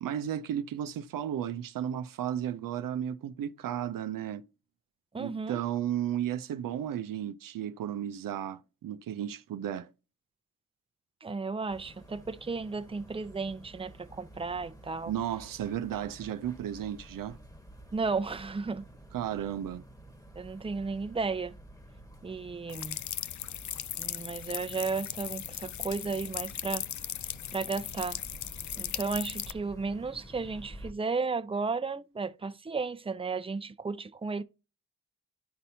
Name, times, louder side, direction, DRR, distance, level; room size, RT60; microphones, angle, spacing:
voice 1, 0.0-4.4 5.2-9.9 15.1-17.4 19.1-19.8, right 10 dB, 75° right, 0.6 m, -34 dB
voice 2, 5.1-5.6 11.2-15.1 17.9-18.9 20.4-21.5 22.2-23.0 24.0-26.8 27.5-28.2 28.8-34.4, right 4 dB, 15° right, 0.6 m, -34 dB
sound 1, 11.7-30.9, right 1 dB, 10° left, 1.4 m, -51 dB
sound 2, 22.7-29.5, left 11 dB, 60° left, 0.5 m, -38 dB
11.0 x 4.1 x 2.7 m
cardioid pair, 55°, 33 cm